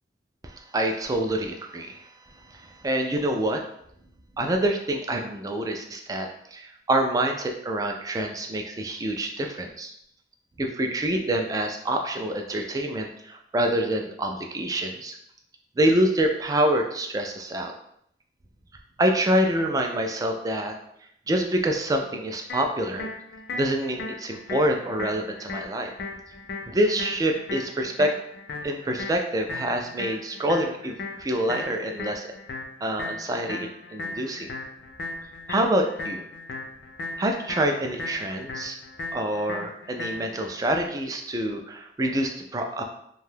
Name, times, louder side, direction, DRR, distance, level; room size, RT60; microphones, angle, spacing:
voice 1, 0.4-2.1 2.4-3.6 4.4-9.9 10.6-15.2 15.8-17.7 19.0-20.8 21.3-23.1 23.5-25.9 26.7-28.1 28.6-32.3 32.8-34.5 35.5-36.2 37.2-38.8 39.1-42.8, right 1 dB, 20° right, 3 dB, 0.3 m, -26 dB
sound 1, 22.5-40.5, left 3 dB, 65° left, 0.5 m, -37 dB
2.6 x 2.3 x 3.3 m, 0.72 s
head